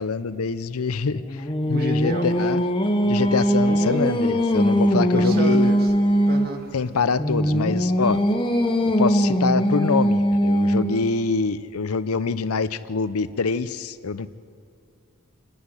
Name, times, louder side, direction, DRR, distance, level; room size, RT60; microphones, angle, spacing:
voice 1, 0.0-2.6 3.0-5.7 6.7-8.2 8.8-14.3, left 4 dB, 85° left, 14 dB, 0.6 m, -25 dB
Singing, 1.1-6.6 7.2-11.1, equal, 20° left, 1.0 m, -21 dB
voice 2, 1.7-2.5 3.7-4.0 5.1-5.9 6.2-6.7 10.9-11.1, right 2 dB, 45° right, 3 dB, 1.9 m, -32 dB
26.5 x 10.0 x 9.8 m, 2.6 s
head